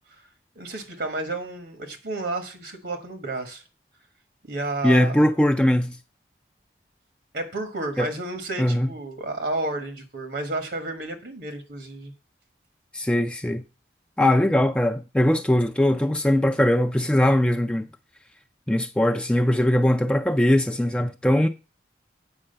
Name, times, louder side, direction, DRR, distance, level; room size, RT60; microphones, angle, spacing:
voice 1, 0.5-3.6 4.5-5.2 7.3-12.1, right 2 dB, 70° right, 1.5 m, -31 dB
voice 2, 4.8-6.0 8.0-8.1 8.6-8.9 12.9-13.6 14.2-17.8 18.7-21.5, left 1 dB, 5° left, 0.4 m, -20 dB
8.7 x 4.8 x 6.6 m
head